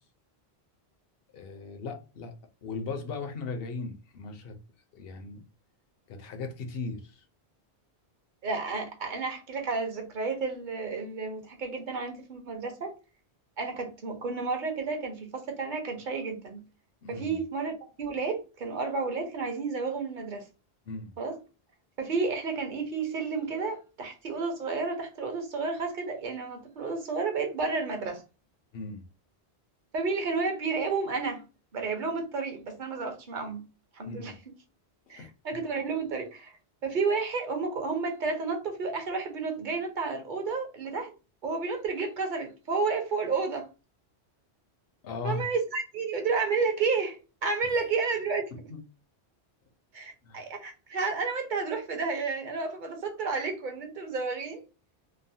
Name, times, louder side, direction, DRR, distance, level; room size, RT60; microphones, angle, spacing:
voice 1, 1.3-2.3 2.6-4.6 4.9-5.4 6.1-7.2 17.0-17.4 20.9-21.1 28.7-29.0 34.1-34.4 35.1-35.3 45.0-45.4 48.7-48.8 50.2-50.5, left 3 dB, 70° left, 0.8 m, -37 dB
voice 2, 8.4-12.9 13.6-16.6 17.1-20.5 21.2-21.4 22.0-28.2 29.9-31.4 31.7-33.6 33.9-34.3 35.1-36.6 36.8-41.1 41.4-43.7 45.2-48.5 49.9-54.6, right 4 dB, 55° right, 0.8 m, -31 dB
3.1 x 2.0 x 2.6 m
omnidirectional pair, 1.1 m